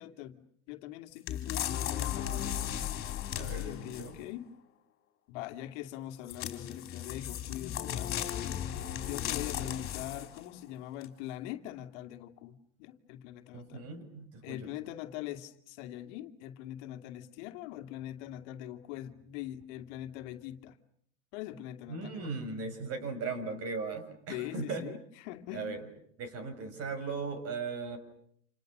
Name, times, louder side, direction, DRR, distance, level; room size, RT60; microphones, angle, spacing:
voice 1, 0.0-4.5 5.3-13.9 14.4-20.8 21.3-22.5 24.3-25.8, left 13 dB, 60° left, 2.3 m, -43 dB
sound 1, 1.3-4.3 6.3-10.4 11.0-11.1, left 10 dB, 35° left, 4.5 m, -36 dB
voice 2, 3.3-4.2 13.5-14.7 21.9-24.9 25.5-25.9 26.2-28.0, right 4 dB, 40° right, 6.5 m, -38 dB
29.0 x 28.5 x 6.6 m
supercardioid pair, 140°, 39 cm